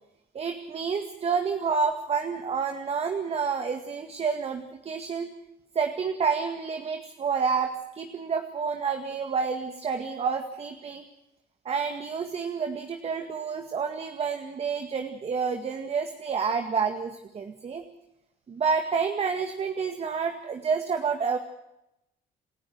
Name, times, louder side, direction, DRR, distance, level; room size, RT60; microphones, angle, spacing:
voice 1, 0.3-5.3 5.8-11.0 11.7-17.8 18.5-21.4, right 5 dB, 35° right, 6 dB, 2.0 m, -29 dB
28.5 x 13.5 x 7.9 m, 0.86 s
cardioid pair, 110°, 17 cm